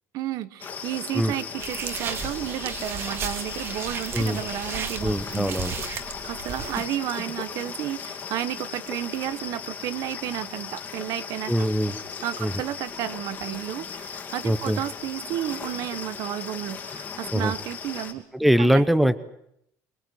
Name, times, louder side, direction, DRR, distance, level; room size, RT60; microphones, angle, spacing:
voice 1, 0.1-5.8 6.2-11.7 12.2-18.2 18.6-19.1, right 12 dB, 60° right, 14 dB, 1.3 m, -32 dB
sound 1, 0.6-18.1, left 6 dB, 25° left, 2.6 m, -37 dB
sound 2, 1.6-6.9, right 5 dB, 35° right, 2.1 m, -34 dB
voice 2, 5.0-5.7 11.5-12.0 12.4-12.5 14.4-14.8 17.3-17.5 18.3-19.2, equal, ahead, 13 dB, 0.9 m, -22 dB
24.5 x 22.0 x 7.9 m, 0.74 s
cardioid pair, 165°, 7 cm